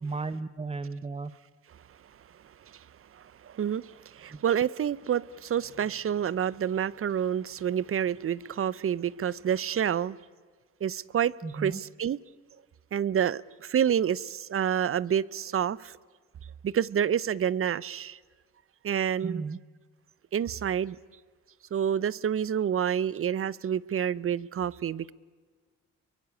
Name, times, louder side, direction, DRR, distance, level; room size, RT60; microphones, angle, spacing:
voice 1, 0.0-1.3 4.3-4.4 11.4-11.8 19.2-19.6, right 4 dB, 20° right, 1.0 m, -34 dB
voice 2, 3.1-10.2 10.8-12.2 12.9-16.0 16.6-18.2 18.8-19.4 20.3-21.0 21.7-25.1, right 9 dB, 45° right, 0.8 m, -28 dB
30.0 x 23.0 x 8.5 m
cardioid pair, 90°, 30 cm